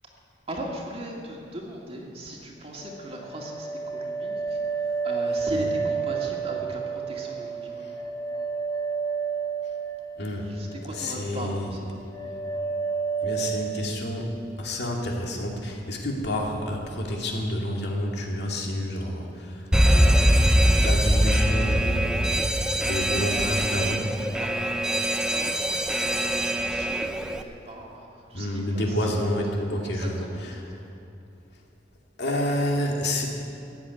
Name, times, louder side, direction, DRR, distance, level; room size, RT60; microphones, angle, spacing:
voice 1, 0.5-8.0 10.2-11.9 24.4-29.3 29.8-30.9, right 1 dB, 30° right, -1 dB, 2.1 m, -39 dB
sound 1, 2.8-10.9 11.2-11.8 12.1-13.9, right 5 dB, 15° left, 1.5 m, -30 dB
voice 2, 10.2-10.5 10.9-11.7 13.2-24.2 28.3-30.7 32.2-33.3, left 1 dB, 60° left, -1 dB, 2.4 m, -29 dB
Alarm, 19.7-27.4, equal, 5° right, 0.6 m, -22 dB
16.0 x 8.2 x 9.5 m, 2.8 s
head